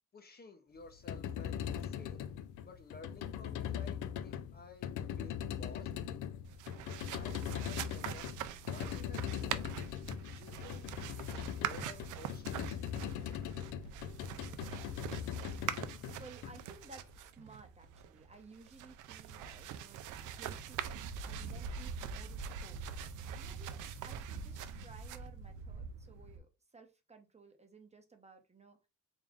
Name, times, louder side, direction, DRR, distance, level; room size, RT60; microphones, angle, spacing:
voice 1, 0.1-2.3 2.6-5.9 6.8-9.8 10.3-13.3, left 3 dB, 30° left, 0.7 m, -54 dB
sound 1, 0.8-17.0, left 9 dB, 80° left, 0.5 m, -40 dB
sound 2, 6.4-26.4, right 8 dB, 80° right, 0.5 m, -43 dB
voice 2, 16.2-21.0 21.2-22.8 23.4-28.8, right 3 dB, 20° right, 0.8 m, -57 dB
3.6 x 2.5 x 3.5 m
cardioid pair, 90°, 30 cm